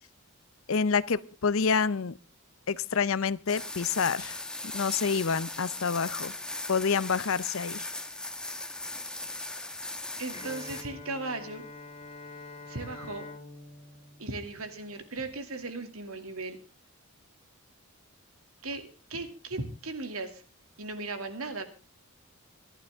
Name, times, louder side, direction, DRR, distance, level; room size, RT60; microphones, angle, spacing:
voice 1, 0.7-2.2 2.7-4.4 4.7-6.3 6.7-7.9, left 5 dB, 70° left, 0.7 m, -28 dB
sound 1, 3.5-10.8, left 2 dB, 5° left, 1.2 m, -38 dB
voice 2, 10.2-11.7 12.7-13.2 14.2-16.6 18.6-18.8 19.1-20.4 20.8-21.7, right 3 dB, 80° right, 2.5 m, -37 dB
Bowed string instrument, 10.3-15.2, left 3 dB, 25° left, 2.3 m, -46 dB
25.5 x 11.5 x 3.6 m
head